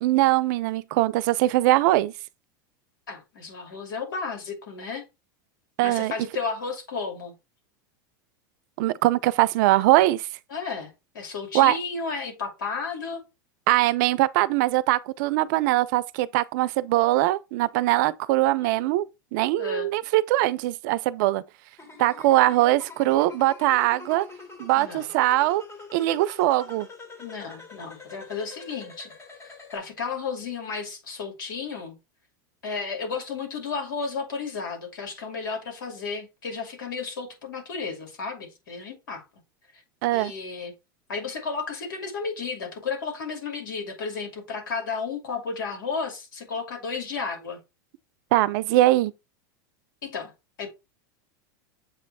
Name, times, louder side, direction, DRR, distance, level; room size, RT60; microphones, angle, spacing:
voice 1, 0.0-2.1 5.8-6.1 8.8-10.3 11.5-11.8 13.7-19.1 19.3-21.4 22.0-24.3 24.6-25.6 25.9-26.9 40.0-40.3 48.3-49.1, right 16 dB, 65° right, 0.5 m, -21 dB
voice 2, 3.1-5.0 5.8-7.3 10.5-13.2 19.6-19.9 24.8-25.1 27.2-29.1 29.4-32.0 32.6-39.2 39.7-39.8 40.1-40.7 41.1-47.6 50.0-50.3 50.6-50.7, left 5 dB, 80° left, 2.6 m, -33 dB
sound 1, 21.8-29.8, left 3 dB, 25° left, 2.2 m, -45 dB
7.5 x 3.1 x 4.1 m
hypercardioid pair, 105°, 11 cm